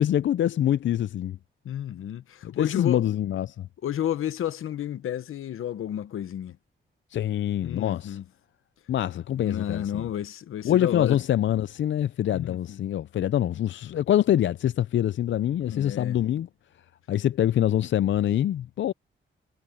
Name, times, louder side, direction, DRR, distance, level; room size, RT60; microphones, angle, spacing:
voice 1, 0.0-1.4 2.4-3.7 7.1-8.2 8.9-10.0 10.6-16.5 17.1-18.9, left 11 dB, 65° left, 0.5 m, -25 dB
voice 2, 1.6-3.0 3.8-6.6 7.6-8.2 9.4-11.2 12.3-12.8 15.6-16.2, left 10 dB, 85° left, 1.1 m, -31 dB
cardioid pair, 70°, 21 cm